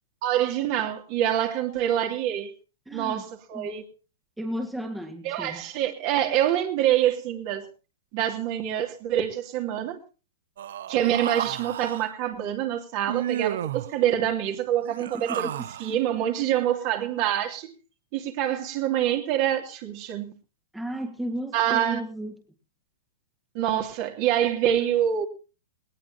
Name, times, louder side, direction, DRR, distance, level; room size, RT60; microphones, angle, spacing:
voice 1, 0.2-2.5 2.9-3.8 5.2-7.7 8.1-10.0 10.9-15.5 15.8-17.7 18.1-20.3 21.5-22.0 23.5-25.2, right 11 dB, 45° right, 2.9 m, -26 dB
voice 2, 2.9-3.2 3.5-3.7 4.4-5.6 15.1-15.4 20.7-22.4, right 1 dB, 5° right, 1.9 m, -33 dB
Human voice, 10.6-12.1 13.1-13.9 14.8-16.0, right 11 dB, 70° right, 0.7 m, -32 dB
19.5 x 18.5 x 2.9 m
hypercardioid pair, 130°, 0 cm